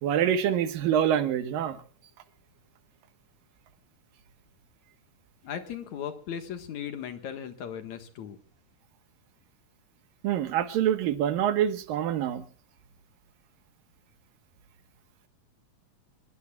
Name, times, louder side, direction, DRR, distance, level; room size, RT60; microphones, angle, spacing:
voice 1, 0.0-1.8 10.2-12.4, right 10 dB, 90° right, 10 dB, 3.0 m, -26 dB
voice 2, 5.4-8.4, left 8 dB, 60° left, 8 dB, 2.7 m, -37 dB
25.5 x 22.0 x 2.4 m, 0.40 s
omnidirectional pair, 3.9 m